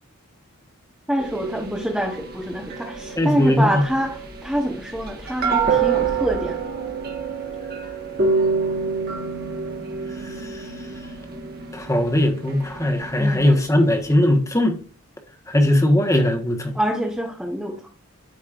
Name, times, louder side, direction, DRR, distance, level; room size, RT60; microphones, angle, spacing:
voice 1, 1.1-6.6 13.2-13.6 16.7-17.9, equal, 5° right, 1.0 m, -26 dB
sound 1, 1.2-14.1, right 5 dB, 45° right, 1.6 m, -27 dB
voice 2, 3.2-3.8 10.5-10.6 11.7-14.8 15.5-16.7, left 1 dB, 15° left, 1.3 m, -19 dB
13.5 x 5.3 x 2.5 m
head